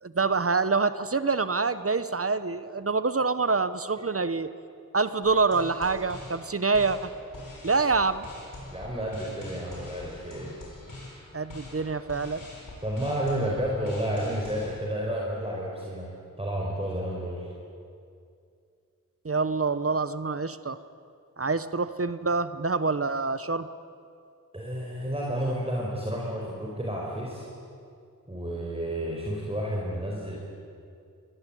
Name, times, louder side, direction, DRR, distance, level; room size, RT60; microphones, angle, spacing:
voice 1, 0.0-4.5 4.9-7.1 7.6-8.3 11.3-12.4 19.2-20.8 21.4-23.7, right 4 dB, 45° right, 13 dB, 1.0 m, -26 dB
sound 1, 5.2-14.7, left 2 dB, 70° left, 7.6 m, -44 dB
voice 2, 8.7-10.5 12.8-16.1 16.4-17.5 24.5-27.5 28.3-30.4, equal, 15° right, -3 dB, 5.0 m, -31 dB
26.5 x 21.0 x 9.2 m, 2.4 s
wide cardioid pair, 85°, 33 cm